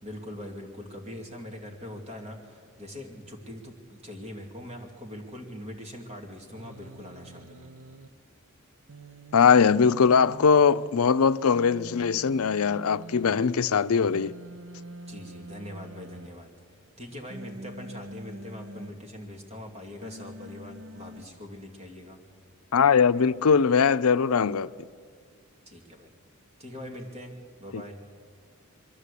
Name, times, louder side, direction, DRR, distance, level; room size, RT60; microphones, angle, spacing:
voice 1, 0.0-7.7 15.1-16.5 17.0-22.2 25.7-26.1 26.6-27.3 27.6-28.0, left 1 dB, 30° right, 2.4 m, -42 dB
Human voice, 6.5-8.1 8.9-10.9 11.5-13.4 14.1-16.3 17.3-18.9 20.0-21.2, right 2 dB, 70° right, 0.8 m, -45 dB
voice 2, 9.3-14.3 22.7-24.7 27.7-27.8, left 6 dB, 85° left, 0.5 m, -21 dB
22.5 x 14.0 x 8.3 m
head